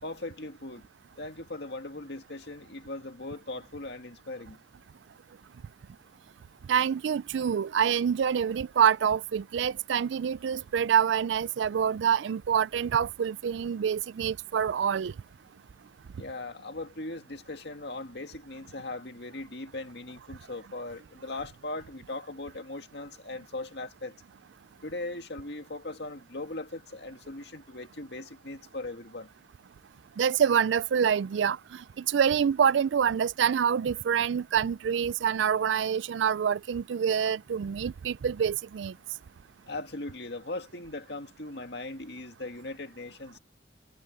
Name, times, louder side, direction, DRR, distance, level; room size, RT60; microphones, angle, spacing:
voice 1, 0.0-0.9 1.2-4.6 16.1-24.2 24.8-29.3 39.7-43.4, left 2 dB, 60° left, 2.0 m, -39 dB
voice 2, 6.7-15.1 30.2-38.9, right 8 dB, 75° right, 0.3 m, -26 dB
head